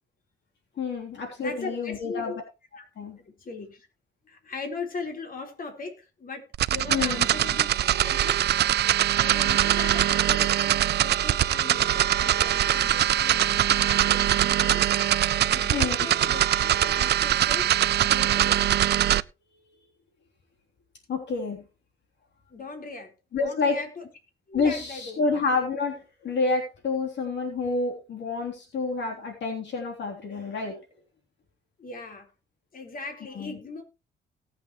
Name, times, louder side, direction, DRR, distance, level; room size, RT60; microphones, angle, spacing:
voice 1, 0.8-2.3 3.0-3.2 6.9-7.3 15.7-16.0 21.1-21.6 23.3-23.8 24.5-30.8 33.3-33.6, left 4 dB, 65° left, 2 dB, 3.4 m, -28 dB
voice 2, 1.4-2.4 2.8-2.9 3.2-3.9 4.3-7.7 8.0-8.4 9.2-15.0 15.5-17.7 18.0-18.7 22.5-24.1 24.5-25.2 31.8-32.3 32.7-33.8, left 3 dB, 45° left, 4 dB, 4.1 m, -39 dB
sound 1, 6.5-19.2, right 12 dB, 55° right, 0.5 m, -22 dB
18.5 x 8.1 x 3.1 m, 0.28 s
cardioid pair, 90°, 20 cm